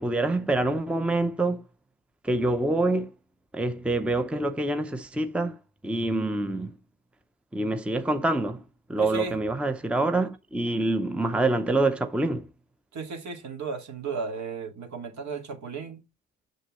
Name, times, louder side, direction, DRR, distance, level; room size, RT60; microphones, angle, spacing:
voice 1, 0.0-1.6 2.2-3.1 3.5-5.6 5.8-6.7 7.5-8.6 8.9-12.5, right 2 dB, 5° right, 0.6 m, -26 dB
voice 2, 9.0-9.4 12.9-16.0, right 4 dB, 65° right, 2.2 m, -35 dB
6.7 x 6.5 x 3.1 m
cardioid pair, 90°, 30 cm